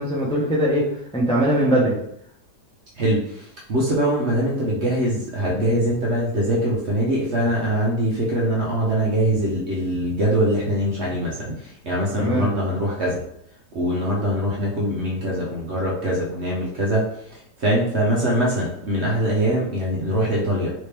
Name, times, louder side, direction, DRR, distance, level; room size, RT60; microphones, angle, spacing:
voice 1, 0.0-2.0 12.2-12.5, right 1 dB, 5° left, -5 dB, 0.4 m, -21 dB
voice 2, 2.9-13.2 13.7-20.7, equal, 55° right, -4 dB, 0.8 m, -23 dB
3.3 x 3.0 x 3.3 m, 0.73 s
omnidirectional pair, 1.9 m